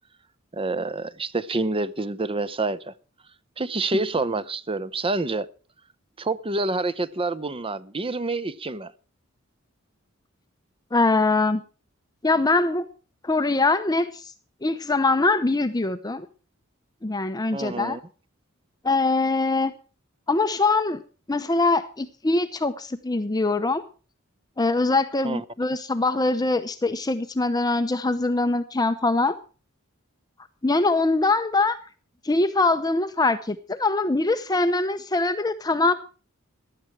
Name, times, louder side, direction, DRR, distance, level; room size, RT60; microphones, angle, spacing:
voice 1, 0.5-2.9 3.6-5.5 6.2-8.9 17.5-18.0 25.2-25.4, right 2 dB, 25° right, 0.8 m, -27 dB
voice 2, 10.9-11.6 12.2-12.9 13.2-14.3 14.6-16.3 17.0-18.0 18.8-19.7 20.3-21.0 21.3-23.8 24.6-29.4 30.6-31.8 32.2-35.9, left 3 dB, 20° left, 0.7 m, -23 dB
15.5 x 11.5 x 4.7 m
head